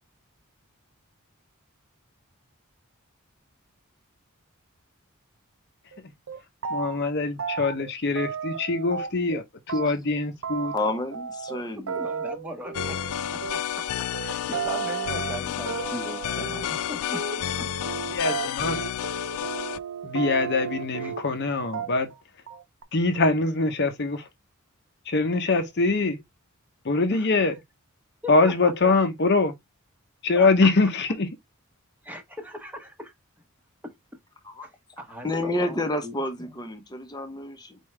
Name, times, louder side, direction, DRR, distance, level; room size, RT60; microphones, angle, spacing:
sound 1, 5.9-6.0 6.3-7.1 7.4-9.4 9.7-21.4 21.7-22.2 22.5-22.8, right 6 dB, 65° right, 0.6 m, -34 dB
voice 1, 6.7-10.7 18.1-18.8 20.0-22.1 22.9-24.2 25.1-26.2 26.8-27.5 28.3-29.5 30.2-31.3, left 3 dB, 50° left, 0.8 m, -23 dB
voice 2, 10.6-12.0 13.9-14.0 34.4-34.7 35.0-37.8, left 1 dB, 20° left, 0.8 m, -30 dB
voice 3, 11.8-13.0 13.3-13.4 14.2-17.3 17.6-17.7 21.0-21.1 27.1-27.3 28.2-28.9 30.3-30.7 32.0-33.1 34.6-34.7 35.0-36.1, left 1 dB, 10° right, 1.1 m, -38 dB
sound 2, 12.7-19.8, left 10 dB, 90° left, 0.3 m, -31 dB
4.5 x 3.4 x 3.3 m
head